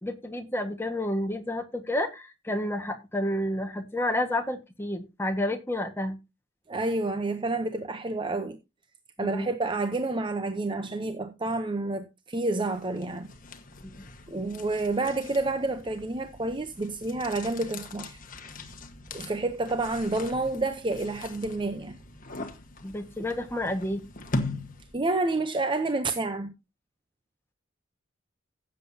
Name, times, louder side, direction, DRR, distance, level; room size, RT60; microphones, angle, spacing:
voice 1, 0.0-6.2 9.2-9.5 13.8-14.0 22.8-24.0, left 1 dB, 10° left, 1.5 m, -30 dB
voice 2, 6.7-8.6 9.2-13.3 14.3-18.2 19.1-22.0 24.9-26.5, right 2 dB, 25° right, 0.7 m, -29 dB
sound 1, 12.7-25.1, left 2 dB, 45° left, 1.4 m, -40 dB
16.0 x 7.6 x 2.7 m
head